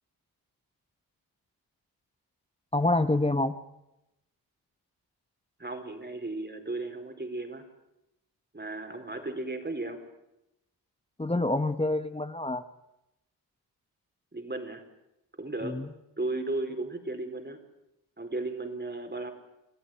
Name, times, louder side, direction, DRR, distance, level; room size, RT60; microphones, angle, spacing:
voice 1, 2.7-3.6 11.2-12.6 15.6-15.9, left 2 dB, 15° left, 11 dB, 1.3 m, -27 dB
voice 2, 5.6-7.7 8.5-10.0 14.3-14.8 15.4-15.8 16.2-17.6 18.2-19.3, right 2 dB, 25° right, 5 dB, 4.5 m, -35 dB
26.0 x 14.0 x 9.4 m, 0.90 s
supercardioid pair, 45°, 42 cm